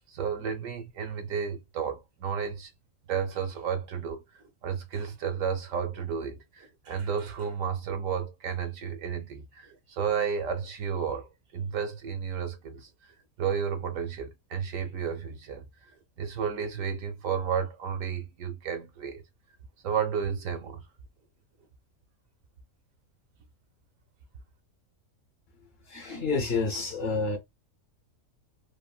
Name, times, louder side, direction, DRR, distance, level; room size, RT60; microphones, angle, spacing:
voice 1, 0.1-2.7 3.1-4.2 4.6-19.2 19.8-20.8, right 7 dB, 75° right, 1.0 m, -32 dB
voice 2, 25.9-27.4, left 4 dB, 50° left, 1.1 m, -29 dB
3.4 x 2.1 x 2.3 m
omnidirectional pair, 1.4 m